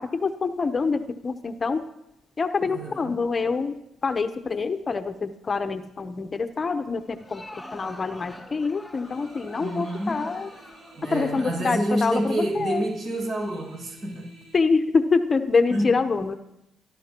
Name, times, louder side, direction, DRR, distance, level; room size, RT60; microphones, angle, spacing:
voice 1, 0.0-1.8 2.4-10.5 11.0-12.9 14.5-16.4, left 4 dB, 35° left, 9 dB, 0.8 m, -26 dB
voice 2, 2.6-3.2 9.6-10.3 11.0-14.3 15.7-15.9, right 1 dB, 55° right, 1 dB, 6.9 m, -28 dB
Crowd, 7.0-12.9, left 1 dB, 15° left, 2.8 m, -45 dB
sound 1, 9.0-14.6, right 3 dB, 80° right, 6.5 m, -52 dB
29.0 x 12.0 x 3.0 m, 0.87 s
cardioid pair, 90°, 0 cm